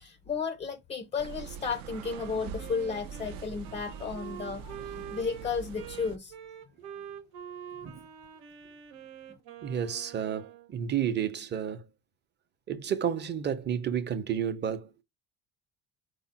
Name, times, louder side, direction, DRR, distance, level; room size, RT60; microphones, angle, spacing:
voice 1, 0.0-6.3, left 5 dB, 20° left, 0.4 m, -33 dB
sound 1, 1.2-6.2, right 7 dB, 70° right, 0.7 m, -43 dB
Wind instrument woodwind instrument, 2.0-10.7, right 9 dB, 85° right, 1.1 m, -45 dB
voice 2, 9.6-11.8 12.7-15.0, right 8 dB, 30° right, 0.7 m, -31 dB
4.8 x 2.0 x 4.1 m
cardioid pair, 120°, 37 cm